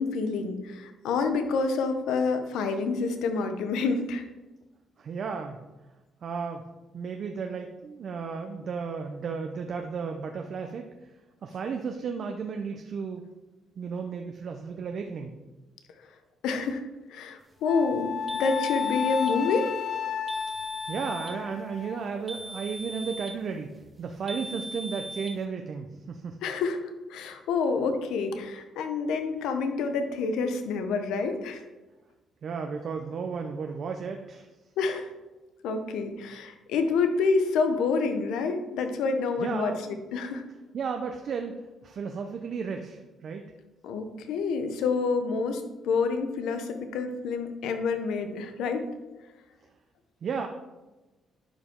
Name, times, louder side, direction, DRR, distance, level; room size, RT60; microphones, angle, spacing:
voice 1, 0.0-4.2 16.4-16.8 17.1-19.7 26.4-31.6 34.8-35.1 35.6-40.4 43.8-48.9, left 4 dB, 90° left, 7 dB, 0.8 m, -28 dB
voice 2, 5.0-5.6 6.2-6.6 6.9-10.9 11.4-13.2 13.8-15.3 20.9-23.7 24.0-26.4 32.4-34.5 39.4-40.0 40.7-41.5 41.8-43.4 50.2-50.5, right 5 dB, 60° right, 4 dB, 0.7 m, -34 dB
Wind instrument woodwind instrument, 17.6-22.0, left 7 dB, 60° left, 0.7 m, -32 dB
sound 1, 18.3-19.4 20.3-21.4 22.3-23.4 24.3-25.4, right 1 dB, 25° right, 1.0 m, -40 dB
11.0 x 5.1 x 3.7 m, 1.1 s
cardioid pair, 90°, 0 cm